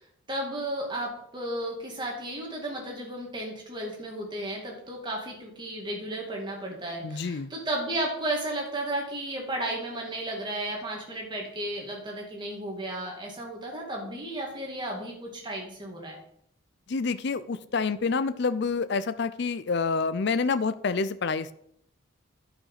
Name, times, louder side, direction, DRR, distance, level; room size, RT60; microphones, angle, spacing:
voice 1, 0.3-16.2, right 1 dB, 20° right, -1 dB, 2.5 m, -34 dB
voice 2, 7.0-7.5 16.9-21.5, left 4 dB, 55° left, 14 dB, 0.5 m, -28 dB
11.0 x 5.9 x 5.7 m, 0.70 s
head